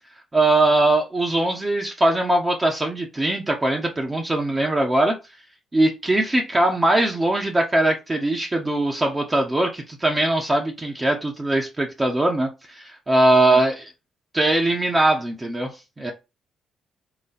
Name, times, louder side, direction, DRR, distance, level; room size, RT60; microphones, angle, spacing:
voice 1, 0.3-5.1 5.7-13.9 14.3-16.1, right 1 dB, 20° right, 0.9 m, -21 dB
4.0 x 2.2 x 4.1 m
cardioid pair, 90°, 0 cm